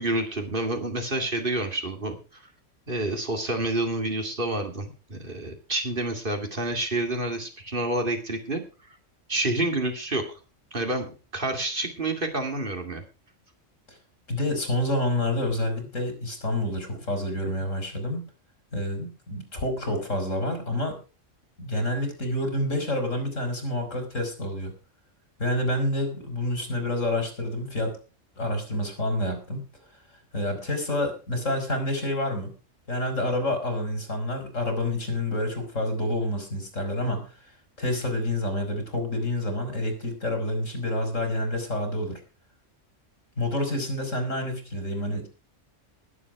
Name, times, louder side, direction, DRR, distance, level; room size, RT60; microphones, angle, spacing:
voice 1, 0.0-2.4 2.9-8.6 9.3-10.4 10.7-13.0, right 2 dB, 45° right, 5 dB, 2.6 m, -28 dB
voice 2, 14.3-18.2 18.7-21.0 21.6-24.7 25.4-28.0 28.4-29.6 30.3-32.5 32.9-37.2 37.8-42.2 43.4-45.3, left 1 dB, 85° left, 6 dB, 4.4 m, -28 dB
19.5 x 7.6 x 4.8 m, 0.33 s
omnidirectional pair, 1.3 m